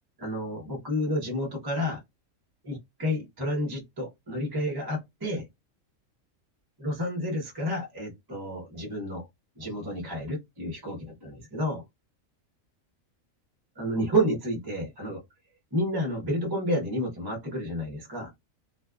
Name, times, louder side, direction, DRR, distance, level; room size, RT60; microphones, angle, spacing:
voice 1, 0.2-2.0 2.6-5.5 6.8-9.3 9.6-11.8 13.8-15.2 15.7-18.3, equal, 20° right, 0.7 m, -30 dB
2.5 x 2.2 x 2.3 m
omnidirectional pair, 1.4 m